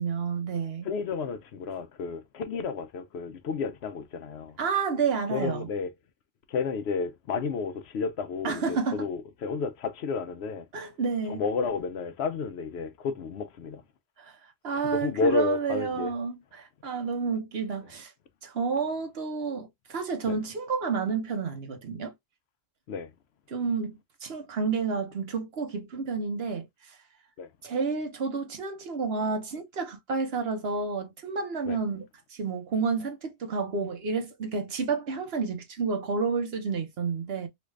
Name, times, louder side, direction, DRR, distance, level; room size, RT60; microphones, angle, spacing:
voice 1, 0.0-0.9 4.6-5.7 8.4-9.1 10.7-11.4 14.2-14.4 14.6-18.1 18.4-22.1 23.5-27.0 27.6-37.5, right 5 dB, 65° right, 1.1 m, -30 dB
voice 2, 0.8-4.6 5.3-5.9 6.5-10.7 11.3-13.8 14.7-16.1 20.3-20.4 22.9-23.1 27.4-27.5 31.7-31.8, left 5 dB, 70° left, 0.9 m, -31 dB
3.2 x 2.4 x 3.1 m
omnidirectional pair, 1.2 m